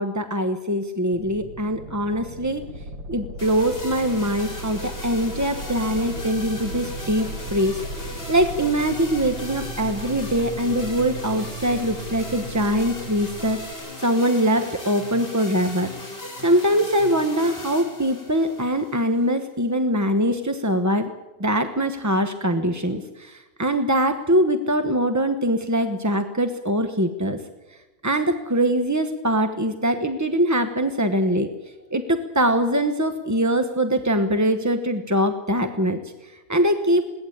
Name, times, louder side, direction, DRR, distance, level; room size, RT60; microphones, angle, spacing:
voice 1, 0.0-2.6 3.1-7.8 8.3-15.9 16.4-21.1 21.4-27.4 28.0-31.5 31.9-36.0 36.5-37.0, equal, 15° right, 8 dB, 0.6 m, -22 dB
sound 1, 1.1-13.7, right 2 dB, 75° right, 2.3 m, -36 dB
sound 2, 3.4-19.4, left 2 dB, 30° left, 5.0 m, -37 dB
21.5 x 17.5 x 8.6 m, 1.1 s
omnidirectional pair, 2.0 m